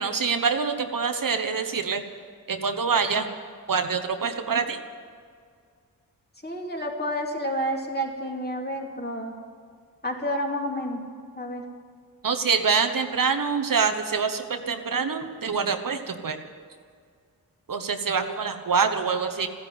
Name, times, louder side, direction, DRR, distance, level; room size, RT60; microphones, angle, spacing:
voice 1, 0.0-2.0 2.5-3.3 3.7-4.8 12.2-16.4 17.7-19.5, right 5 dB, 65° right, 7 dB, 1.2 m, -25 dB
voice 2, 6.4-9.4 10.0-11.0 11.3-11.6, equal, 25° left, 0 dB, 3.0 m, -30 dB
14.5 x 10.5 x 9.4 m, 2.1 s
cardioid pair, 55°, 36 cm